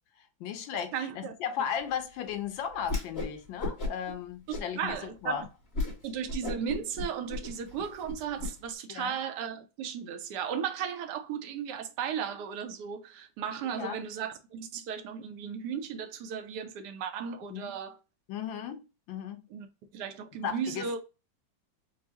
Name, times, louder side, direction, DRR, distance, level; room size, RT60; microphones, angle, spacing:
voice 1, 0.4-5.5 8.9-9.2 13.8-14.0 17.5-17.7 18.3-19.5 20.4-21.0, left 8 dB, 80° left, 1.4 m, -36 dB
voice 2, 0.9-1.3 4.5-5.5 6.0-18.0 19.5-21.0, right 7 dB, 70° right, 1.2 m, -35 dB
Whoosh swoosh swish, 2.8-3.3 3.6-4.1 4.5-5.0 5.4-5.5 5.7-5.9 6.3-8.5, left 2 dB, 35° left, 1.5 m, -34 dB
4.6 x 2.1 x 2.8 m
omnidirectional pair, 2.1 m